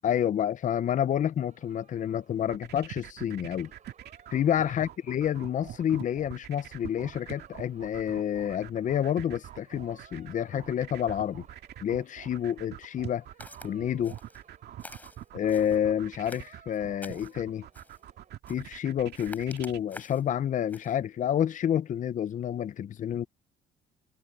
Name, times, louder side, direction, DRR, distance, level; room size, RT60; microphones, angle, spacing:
voice 1, 0.0-3.7 4.3-11.4 11.8-13.2 13.6-14.1 15.3-17.7 18.5-23.2, left 9 dB, 45° left, 0.7 m, -29 dB
sound 1, 1.5-18.3, right 7 dB, 45° right, 3.5 m, -61 dB
sound 2, 2.4-19.8, right 12 dB, 70° right, 2.1 m, -44 dB
Walk footsteps, 13.4-13.7 14.0-14.4 14.8-15.8 16.2-17.4 17.7-18.0 18.4-18.8 19.1-20.3 20.7-20.9, left 1 dB, 10° left, 4.7 m, -48 dB
cardioid pair, 105°, 18 cm